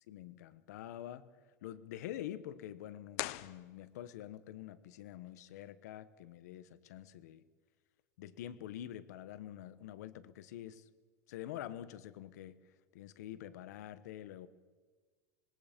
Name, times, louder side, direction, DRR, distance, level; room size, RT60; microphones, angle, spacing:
voice 1, 0.1-1.3 1.6-7.4 8.2-10.8 11.3-12.6 12.9-14.5, left 12 dB, 80° left, 1.3 m, -46 dB
sound 1, 3.1-4.3, left 18 dB, 60° left, 0.8 m, -42 dB
25.5 x 20.5 x 5.3 m
supercardioid pair, 150°, 9 cm